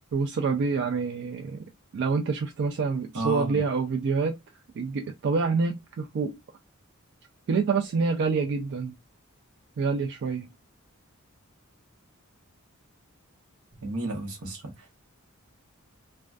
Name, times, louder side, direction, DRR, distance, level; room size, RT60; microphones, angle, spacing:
voice 1, 0.1-1.6 1.9-4.4 4.8-6.4 7.5-8.9 9.8-10.5, right 4 dB, 55° right, 0.3 m, -27 dB
voice 2, 3.1-3.6 13.7-15.0, right 1 dB, 85° right, 0.9 m, -32 dB
2.5 x 2.2 x 2.2 m
head